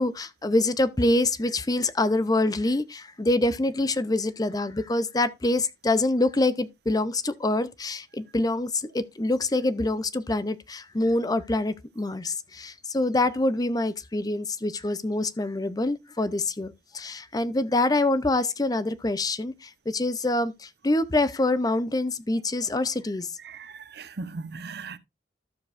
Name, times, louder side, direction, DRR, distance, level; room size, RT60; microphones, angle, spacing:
voice 1, 0.0-23.3, left 2 dB, 20° left, 0.6 m, -25 dB
voice 2, 23.4-25.0, right 4 dB, 65° right, 0.8 m, -38 dB
13.0 x 7.0 x 2.5 m
head